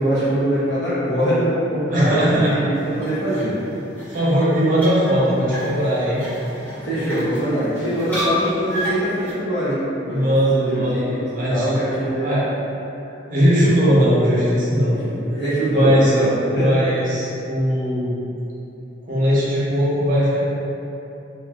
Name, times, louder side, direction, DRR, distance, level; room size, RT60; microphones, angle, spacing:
voice 1, 0.0-3.5 6.8-10.2 10.5-11.2 11.5-12.3 14.9-16.8, right 1 dB, 60° left, -11 dB, 1.1 m, -22 dB
voice 2, 1.9-2.5 4.1-6.2 10.1-12.4 13.3-15.0 15.6-16.1 16.5-18.1 19.1-20.4, equal, 45° right, -8 dB, 0.7 m, -19 dB
sound 1, 2.7-9.3, equal, 10° left, 0.7 m, -31 dB
2.6 x 2.3 x 3.5 m, 2.9 s
head